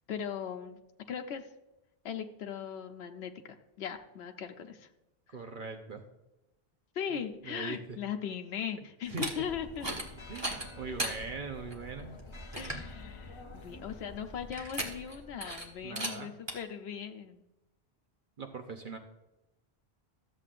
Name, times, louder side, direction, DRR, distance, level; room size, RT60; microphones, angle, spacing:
voice 1, 0.1-0.8 1.1-1.4 2.0-4.9 5.3-5.4 6.9-9.9 12.5-17.4, left 8 dB, 80° left, 5 dB, 1.0 m, -39 dB
voice 2, 5.3-6.0 7.1-8.0 9.1-9.5 10.3-12.2 15.8-16.3 18.4-19.0, right 4 dB, 55° right, 4 dB, 1.0 m, -41 dB
sound 1, 9.0-9.3 9.8-10.1 10.4-11.2 11.7-11.8 12.2-12.3 12.5-12.9 14.5-15.2 15.4-15.7 16.0-16.1 16.5-16.6, right 1 dB, 25° right, 1.3 m, -36 dB
sound 2, 9.3-15.9, left 2 dB, 30° left, 0.7 m, -48 dB
13.0 x 7.6 x 2.5 m, 0.92 s
omnidirectional pair, 1.1 m